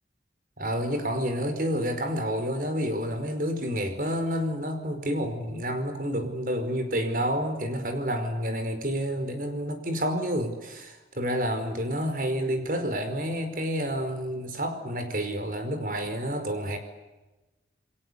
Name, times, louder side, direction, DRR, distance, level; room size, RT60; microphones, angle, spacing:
voice 1, 0.6-16.8, equal, 50° right, 8 dB, 5.0 m, -29 dB
29.0 x 22.5 x 8.3 m, 1.1 s
head